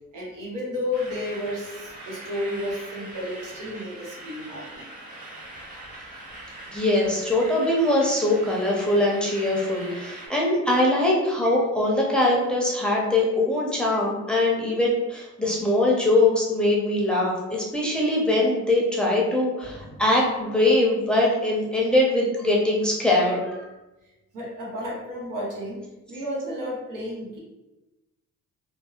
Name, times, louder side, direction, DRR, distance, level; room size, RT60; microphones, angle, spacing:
voice 1, 0.1-4.8 13.9-14.0 19.7-20.0 24.3-25.8 26.1-27.4, left 1 dB, 90° right, -5 dB, 1.0 m, -32 dB
sound 1, 0.9-10.3, right 1 dB, 30° right, 1.0 m, -42 dB
voice 2, 6.7-23.6, left 1 dB, 5° left, -3 dB, 0.6 m, -22 dB
2.7 x 2.0 x 2.3 m, 1.0 s
cardioid pair, 90°, 30 cm